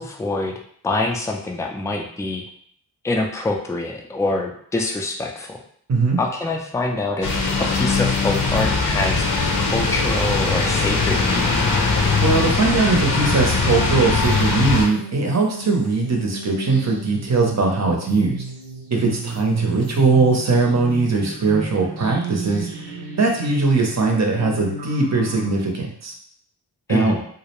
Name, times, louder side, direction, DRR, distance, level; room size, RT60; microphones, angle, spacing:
voice 1, 0.0-2.4 3.0-5.6 6.2-11.7 26.9-27.2, left 2 dB, 10° left, 2 dB, 0.3 m, -25 dB
sound 1, 7.2-14.8, left 3 dB, 55° left, 0.6 m, -20 dB
voice 2, 12.2-18.4 18.9-26.1 26.9-27.1, right 3 dB, 40° right, 1 dB, 0.6 m, -20 dB
sound 2, 14.2-25.5, right 3 dB, 85° right, 0.6 m, -33 dB
2.4 x 2.0 x 2.9 m, 0.62 s
wide cardioid pair, 60°, 40 cm